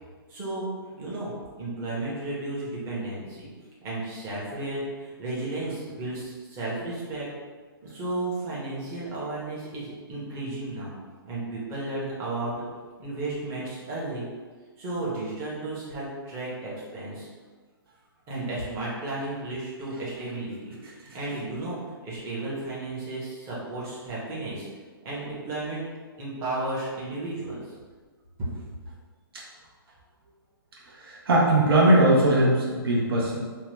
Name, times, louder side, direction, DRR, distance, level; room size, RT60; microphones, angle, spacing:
voice 1, 0.3-0.7 1.0-1.3 1.6-3.5 3.8-7.3 7.8-11.0 11.2-12.5 13.0-14.3 14.8-17.3 18.3-21.8 22.0-24.7 25.0-25.8 26.2-27.6 28.4-28.5, right 2 dB, 20° right, -7 dB, 0.8 m, -33 dB
voice 2, 30.9-33.4, right 1 dB, 75° right, -5 dB, 0.8 m, -20 dB
2.7 x 2.2 x 3.2 m, 1.5 s
hypercardioid pair, 155°, 13 cm